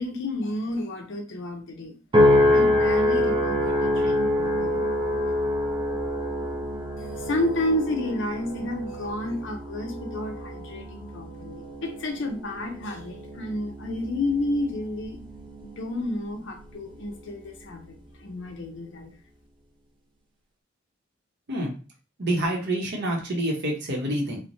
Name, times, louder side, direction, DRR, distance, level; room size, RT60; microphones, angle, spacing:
voice 1, 0.0-1.9 2.5-4.8 5.3-5.4 7.0-15.2 15.8-18.0 18.2-19.1, left 1 dB, 65° left, 3 dB, 0.6 m, -31 dB
sound 1, 2.1-16.6 17.1-17.6, left 1 dB, 25° right, 0.5 m, -26 dB
voice 2, 22.2-24.4, right 1 dB, 55° right, -1 dB, 0.8 m, -27 dB
3.1 x 2.1 x 2.6 m, 0.35 s
head